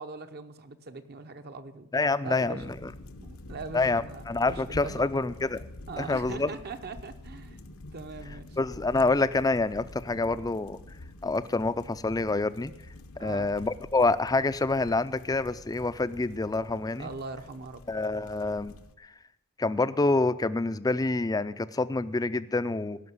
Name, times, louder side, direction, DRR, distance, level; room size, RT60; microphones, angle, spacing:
voice 1, 0.0-1.9 2.2-2.7 3.2-5.2 5.9-7.6 7.9-8.6 13.2-13.5 17.0-17.8, right 3 dB, 50° right, 8 dB, 0.9 m, -41 dB
voice 2, 1.9-2.6 3.7-5.6 6.0-6.5 8.6-10.8 11.2-12.7 13.2-17.1 17.9-18.7 19.6-23.0, left 3 dB, 15° left, 14 dB, 0.4 m, -27 dB
sound 1, 2.6-18.9, left 1 dB, 75° left, 0.9 m, -47 dB
16.5 x 5.9 x 9.5 m, 0.87 s
head